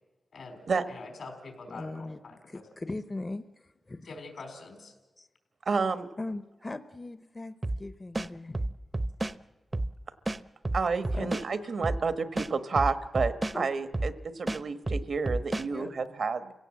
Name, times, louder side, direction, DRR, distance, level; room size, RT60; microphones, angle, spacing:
voice 1, 0.3-2.7 4.0-4.9, left 3 dB, 85° left, 5 dB, 4.3 m, -45 dB
voice 2, 1.7-2.2 2.5-4.1 5.2-5.3 6.2-8.7 11.1-11.3 13.5-13.7 15.7-15.9, left 2 dB, 30° left, 12 dB, 0.7 m, -39 dB
voice 3, 5.6-6.1 10.7-16.5, right 4 dB, 70° right, 11 dB, 1.2 m, -30 dB
sound 1, 7.6-7.8 8.1-9.4 9.7-9.9 10.3-11.5 11.8-12.0 12.4-13.6 13.9-14.1 14.5-15.7, right 2 dB, 25° right, 0.6 m, -30 dB
30.0 x 17.0 x 7.6 m, 1.2 s
wide cardioid pair, 95°, 0 cm